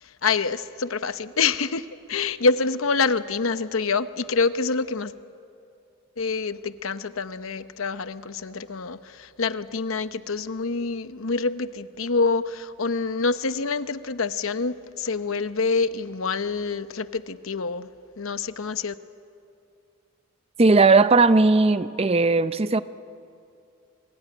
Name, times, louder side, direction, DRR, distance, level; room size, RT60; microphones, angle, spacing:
voice 1, 0.2-5.1 6.2-17.9 18.2-18.9, left 4 dB, 75° left, 12 dB, 0.9 m, -26 dB
voice 2, 20.6-22.8, right 3 dB, 30° right, 13 dB, 0.5 m, -17 dB
26.0 x 21.5 x 10.0 m, 2.6 s
head